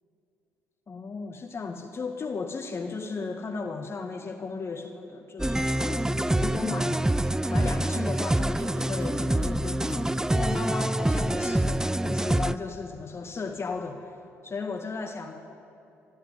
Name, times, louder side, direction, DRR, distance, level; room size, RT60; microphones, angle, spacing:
voice 1, 0.9-7.0 7.5-14.1 14.4-15.4, left 4 dB, 35° left, 4 dB, 1.9 m, -35 dB
sound 1, 5.4-12.6, right 1 dB, 10° right, 0.6 m, -26 dB
sound 2, 6.8-11.6, right 6 dB, 85° right, 1.1 m, -52 dB
25.5 x 13.5 x 9.6 m, 2.8 s
figure-of-eight pair, 45°, 7 cm